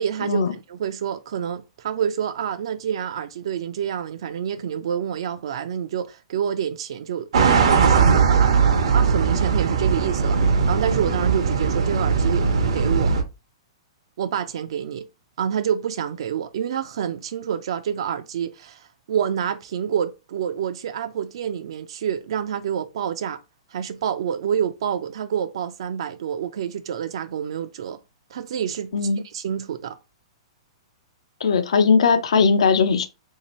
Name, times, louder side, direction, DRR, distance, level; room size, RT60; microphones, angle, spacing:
voice 1, 0.0-8.5 8.8-13.2 14.2-15.1 15.4-23.4 23.7-28.0 28.3-28.9 29.3-30.0, right 8 dB, 65° right, 0.3 m, -28 dB
sound 1, 7.3-13.2, right 5 dB, 85° right, 0.7 m, -19 dB
voice 2, 31.4-33.1, left 5 dB, 85° left, 0.5 m, -18 dB
3.2 x 2.8 x 2.9 m
hypercardioid pair, 160°, 3 cm